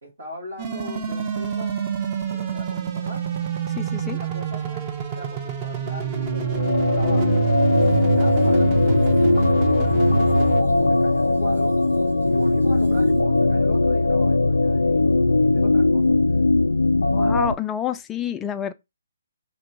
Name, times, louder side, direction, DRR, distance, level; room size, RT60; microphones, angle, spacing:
voice 1, 0.0-1.8 2.3-3.2 4.0-7.3 8.0-10.1 10.6-11.7 12.2-16.0, equal, 80° right, 1.9 m, -39 dB
sound 1, 0.6-10.6, right 9 dB, 30° right, 0.8 m, -26 dB
voice 2, 3.8-4.2 17.1-18.7, left 9 dB, 15° left, 0.4 m, -28 dB
sound 2, 6.0-17.5, left 2 dB, 85° left, 0.3 m, -19 dB
sound 3, 7.7-13.2, right 4 dB, 60° right, 0.7 m, -39 dB
3.1 x 3.0 x 4.4 m
figure-of-eight pair, 140°, 0 cm